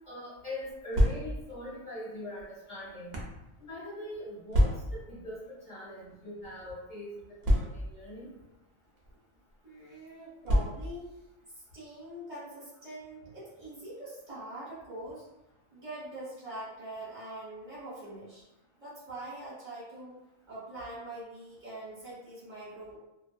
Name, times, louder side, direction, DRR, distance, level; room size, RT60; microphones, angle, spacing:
voice 1, 0.1-3.2 3.6-7.1 7.5-8.3, left 1 dB, 40° left, -10 dB, 1.1 m, -42 dB
sound 1, 0.7-1.6 2.4-3.4 4.5-5.1 6.0-6.2 6.4-6.5 7.4-8.1 9.0-9.2 10.4-11.1, equal, 65° right, 0.7 m, -27 dB
voice 2, 9.6-11.1 11.5-15.3 15.7-18.4 18.8-20.2 20.5-23.0, right 1 dB, 40° right, -10 dB, 1.2 m, -43 dB
2.4 x 2.3 x 2.3 m, 0.94 s
omnidirectional pair, 1.2 m